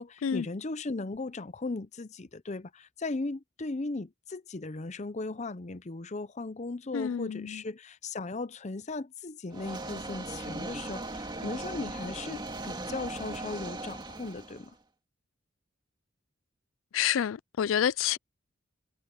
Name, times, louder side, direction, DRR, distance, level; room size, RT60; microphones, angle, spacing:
voice 1, 0.0-14.7, left 3 dB, 35° left, 0.7 m, -37 dB
voice 2, 6.9-7.6 16.9-18.2, left 9 dB, 80° left, 0.4 m, -28 dB
sound 1, 9.5-14.7, right 2 dB, 25° right, 2.3 m, -38 dB
head